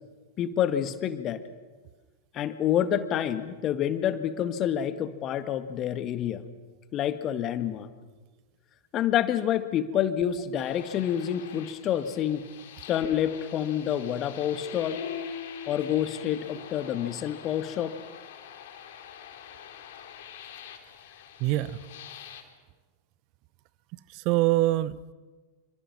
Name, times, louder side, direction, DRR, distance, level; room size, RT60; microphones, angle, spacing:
voice 1, 0.4-1.4 2.3-6.4 6.9-7.9 8.9-12.4 12.9-15.0 15.7-18.0, left 10 dB, 30° left, 11 dB, 1.7 m, -28 dB
sound 1, 10.6-22.4, left 8 dB, 55° left, 2.9 m, -43 dB
voice 2, 21.4-21.8 24.1-25.1, right 17 dB, 40° right, 18 dB, 0.8 m, -24 dB
27.5 x 25.5 x 6.1 m, 1.3 s
figure-of-eight pair, 90°, 0 cm